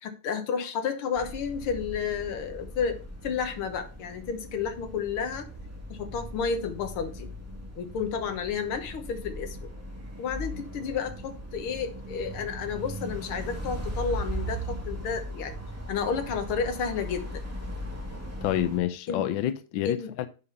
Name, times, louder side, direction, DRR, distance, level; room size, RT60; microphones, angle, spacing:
voice 1, 0.0-5.5 5.9-7.3 7.8-9.7 10.2-15.6 15.9-17.4 19.1-19.3 19.9-20.1, left 6 dB, 85° left, 2.0 m, -31 dB
sound 1, 1.1-18.8, equal, 10° right, 1.0 m, -38 dB
voice 2, 18.4-20.3, left 12 dB, 70° left, 1.3 m, -28 dB
9.7 x 3.8 x 5.5 m
omnidirectional pair, 2.3 m